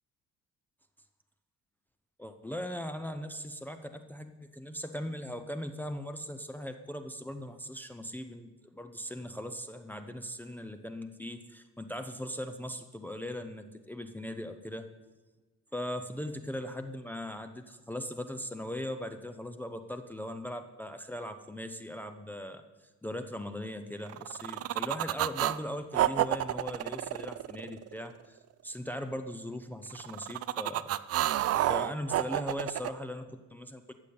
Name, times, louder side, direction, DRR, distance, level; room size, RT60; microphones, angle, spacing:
voice 1, 2.2-14.9 15.7-22.6 23.0-28.4 28.6-30.9 31.7-33.9, equal, 5° left, 6 dB, 0.5 m, -39 dB
sound 1, 24.1-25.6 25.9-28.1 29.9-32.9, right 13 dB, 50° right, 0.5 m, -30 dB
13.5 x 8.0 x 8.6 m, 1.2 s
cardioid pair, 175°, 32 cm